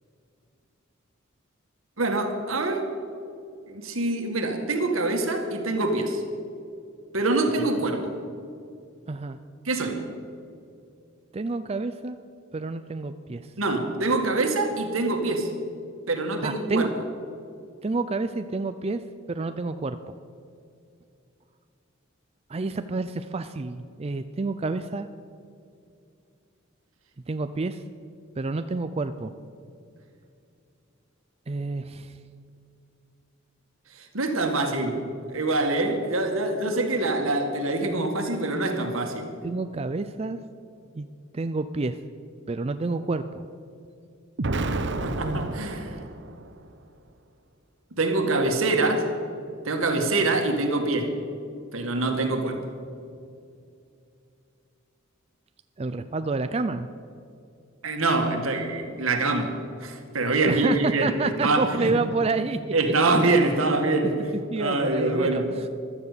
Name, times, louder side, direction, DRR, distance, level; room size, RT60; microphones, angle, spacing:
voice 1, 2.0-2.9 3.7-6.2 7.1-8.1 9.7-10.0 13.6-15.5 16.1-16.9 34.0-35.0 35.3-39.3 45.0-46.0 47.9-49.1 49.6-51.1 51.7-52.6 57.8-62.0 62.7-65.5, right 2 dB, 80° right, 5 dB, 2.0 m, -25 dB
voice 2, 9.1-9.4 11.3-12.2 12.5-13.5 16.4-16.9 17.8-19.0 19.3-20.0 22.5-25.1 27.3-27.8 28.4-29.3 31.5-32.1 39.4-40.4 40.9-41.1 41.3-42.0 42.5-43.4 45.2-45.6 55.8-56.9 60.5-62.7 64.5-65.7, right 3 dB, 30° right, 10 dB, 0.4 m, -29 dB
Explosion, 44.4-46.5, right 2 dB, 60° right, 0.8 m, -30 dB
15.0 x 12.5 x 6.8 m, 2.5 s
head